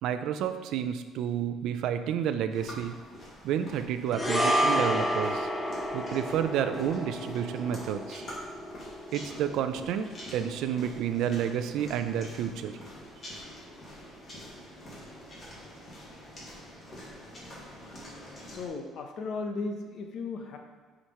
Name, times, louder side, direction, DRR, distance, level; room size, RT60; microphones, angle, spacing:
voice 1, 0.0-2.9 3.4-5.5 5.9-8.2 9.1-12.7, right 9 dB, 65° right, 9 dB, 0.5 m, -30 dB
sound 1, 2.5-18.7, equal, 30° left, 2.0 m, -46 dB
sound 2, 4.1-12.6 12.9-13.1, equal, 10° left, 0.7 m, -32 dB
voice 2, 18.5-20.6, left 3 dB, 50° left, 4 dB, 1.0 m, -35 dB
9.9 x 5.0 x 3.1 m, 1.4 s
cardioid pair, 160°, 0 cm